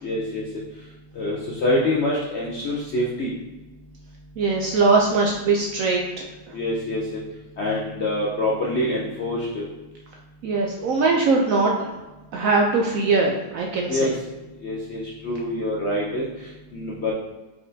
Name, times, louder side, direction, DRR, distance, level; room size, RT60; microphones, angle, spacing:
voice 1, 0.0-0.4 1.1-3.3 6.5-7.2 7.6-9.6 13.9-14.2 14.6-17.1, left 1 dB, 60° left, -4 dB, 0.7 m, -26 dB
voice 2, 4.4-6.0 10.4-11.7 12.3-14.1, right 3 dB, 70° right, -1 dB, 0.8 m, -21 dB
4.4 x 4.1 x 2.7 m, 1.1 s
omnidirectional pair, 1.8 m